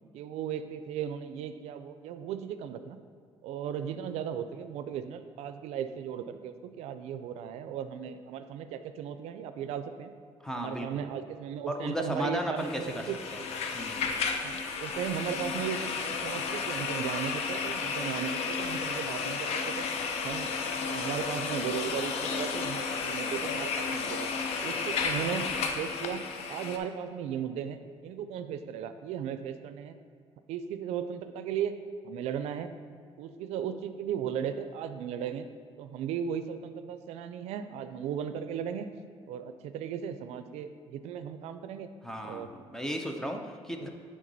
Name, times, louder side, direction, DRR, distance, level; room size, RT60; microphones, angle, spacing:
voice 1, 0.1-3.0 3.4-10.1 10.6-13.2 14.4-19.9 20.2-20.5 20.8-24.3 24.6-25.5 25.7-26.2 26.5-30.0 30.5-31.8 32.0-32.7 33.2-35.5 35.8-38.9 39.3-41.9 42.2-42.5 43.8-43.9, right 8 dB, 85° right, 10 dB, 0.4 m, -36 dB
voice 2, 10.4-11.0 11.7-13.0 13.3-13.4 13.7-14.1 42.0-43.9, equal, 5° left, 3 dB, 0.5 m, -34 dB
sound 1, 12.6-26.8, left 5 dB, 75° left, 0.6 m, -33 dB
9.1 x 3.7 x 4.0 m, 2.1 s
cardioid pair, 140°, 11 cm